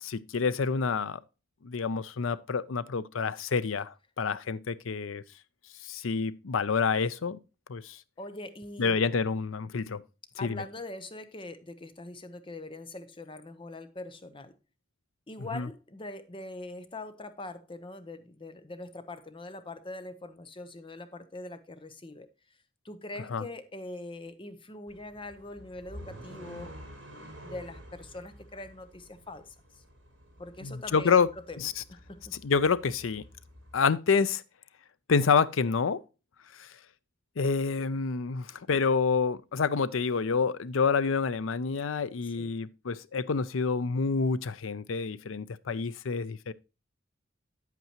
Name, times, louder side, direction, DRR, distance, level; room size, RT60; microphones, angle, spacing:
voice 1, 0.0-1.2 1.6-5.2 5.8-7.4 7.7-8.0 8.8-10.0 10.4-10.6 15.5-15.7 23.3-23.4 30.6-31.3 31.6-31.7 32.4-33.2 33.7-34.4 35.1-36.0 36.6-36.7 37.4-46.5, left 5 dB, 85° left, 0.6 m, -28 dB
voice 2, 8.2-9.0 10.4-14.5 15.3-22.3 22.8-26.8 27.4-29.8 30.4-31.6 31.9-32.3 42.4-42.5, left 2 dB, 25° left, 0.8 m, -42 dB
sound 1, 24.9-33.8, equal, 65° right, 5.1 m, -50 dB
9.1 x 8.3 x 2.9 m
head